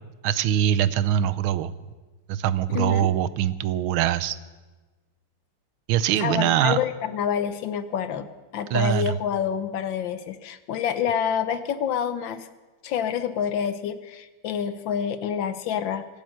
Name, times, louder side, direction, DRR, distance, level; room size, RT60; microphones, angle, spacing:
voice 1, 0.2-1.7 2.3-4.4 5.9-6.8 8.7-9.1, right 11 dB, 80° right, 15 dB, 1.5 m, -23 dB
voice 2, 2.7-3.1 6.2-8.3 8.5-12.5 12.8-16.1, left 8 dB, 70° left, 11 dB, 1.5 m, -27 dB
24.5 x 8.9 x 6.5 m, 1.2 s
omnidirectional pair, 2.3 m